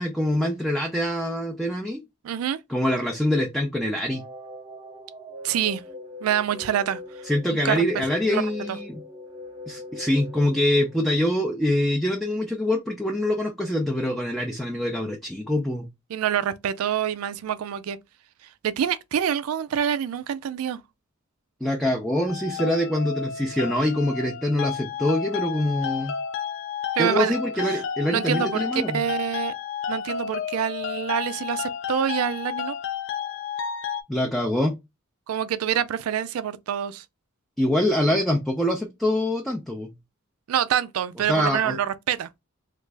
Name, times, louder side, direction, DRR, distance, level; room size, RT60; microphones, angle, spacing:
voice 1, 0.0-2.0 2.7-4.2 7.3-9.0 9.7-15.9 21.6-26.2 27.0-29.0 34.1-34.8 37.6-39.9 41.3-41.8, left 1 dB, ahead, 0.4 m, -24 dB
voice 2, 2.2-2.6 5.4-5.8 6.2-7.0 7.5-7.8 8.3-8.4 8.7-8.8 16.1-18.0 18.6-20.8 27.0-27.3 27.7-27.8 28.1-29.5 29.9-32.8 35.3-37.0 40.5-42.3, right 9 dB, 90° right, 0.3 m, -26 dB
sound 1, 4.0-11.9, left 2 dB, 20° right, 0.9 m, -41 dB
sound 2, 22.3-34.0, left 7 dB, 60° left, 0.4 m, -31 dB
3.1 x 2.4 x 3.3 m
head